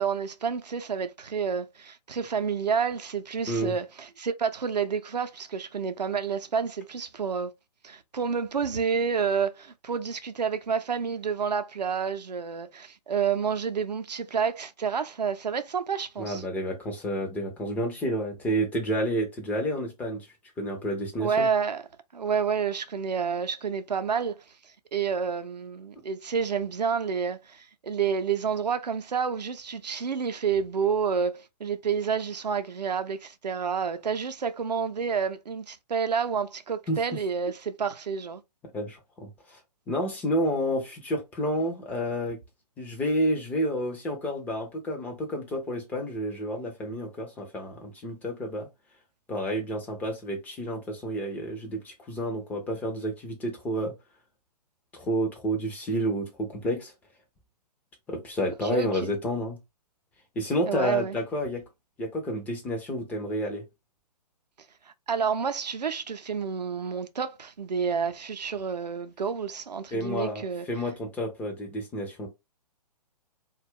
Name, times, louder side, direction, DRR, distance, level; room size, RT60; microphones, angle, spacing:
voice 1, 0.0-7.5 7.8-16.4 21.2-21.9 22.1-24.4 24.9-38.4 58.6-58.9 60.7-61.2 65.1-70.7, right 6 dB, 80° right, 0.5 m, -29 dB
voice 2, 16.2-20.3 20.6-21.5 36.9-37.0 38.7-39.6 39.9-42.4 42.8-48.7 49.3-53.9 54.9-56.9 58.1-59.6 60.4-61.6 62.0-63.6 69.9-72.3, equal, 5° left, 0.4 m, -30 dB
2.2 x 2.0 x 3.5 m
figure-of-eight pair, 125°, 21 cm